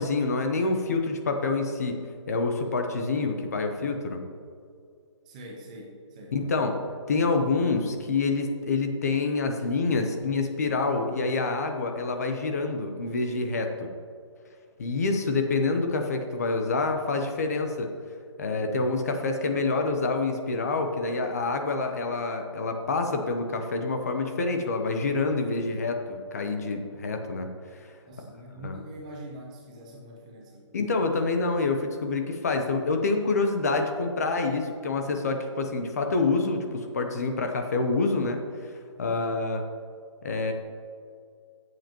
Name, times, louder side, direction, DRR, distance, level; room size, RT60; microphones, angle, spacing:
voice 1, 0.0-2.0 2.3-4.2 6.3-6.8 7.1-13.9 14.8-17.9 18.4-27.5 28.6-28.8 30.7-38.7 39.0-39.6 40.2-40.5, left 3 dB, 30° left, 5 dB, 0.8 m, -27 dB
voice 2, 5.3-6.6 28.1-30.7 39.0-39.4, equal, 15° right, 0 dB, 0.7 m, -43 dB
14.5 x 7.8 x 3.0 m, 2.3 s
hypercardioid pair, 170°, 16 cm